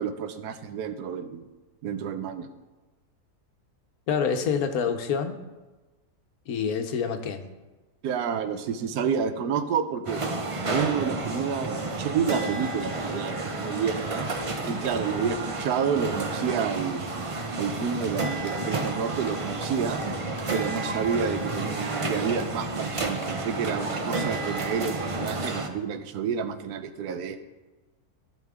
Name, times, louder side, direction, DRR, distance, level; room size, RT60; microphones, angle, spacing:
voice 1, 0.0-1.5 1.8-2.5 8.0-10.2 10.7-14.3 14.6-17.1 17.5-20.0 20.5-27.4, right 7 dB, 80° right, 10 dB, 1.2 m, -29 dB
voice 2, 4.1-5.4 6.5-7.4 15.2-15.3, left 6 dB, 70° left, 7 dB, 1.2 m, -27 dB
sound 1, 10.1-25.7, right 2 dB, 40° right, 0.4 m, -31 dB
sound 2, 17.6-17.7 18.0-18.1 18.5-18.6 18.9-19.0 19.3-19.4 19.6-19.7 20.0-20.1 20.4-20.5 20.8-20.9 21.1-21.2 21.5-21.6 21.9-22.0 22.4-22.5 22.8-22.9 23.2-23.3 25.0-26.0, left 1 dB, 25° left, 1.9 m, -48 dB
14.5 x 5.7 x 3.6 m, 1.2 s
omnidirectional pair, 1.6 m